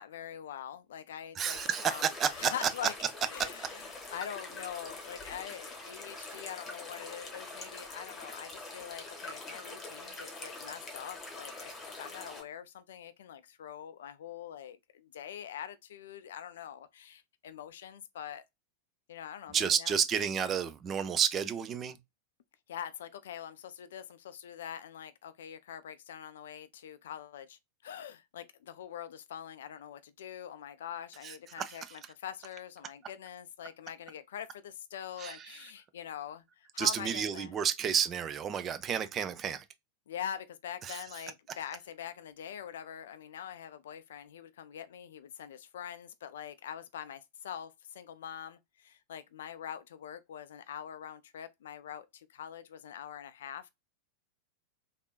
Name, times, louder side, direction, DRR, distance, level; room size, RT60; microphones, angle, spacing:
voice 1, 0.0-2.1 2.3-2.9 3.3-18.4 19.1-20.0 22.7-37.5 40.1-53.7, left 9 dB, 60° left, 0.4 m, -44 dB
voice 2, 1.4-2.7 19.5-22.0 31.2-32.0 35.2-35.7 36.8-39.6 40.8-41.0, right 8 dB, 25° right, 0.4 m, -31 dB
sound 1, 1.5-12.4, left 2 dB, 20° left, 1.1 m, -44 dB
3.5 x 2.5 x 2.3 m
figure-of-eight pair, 90°, 0 cm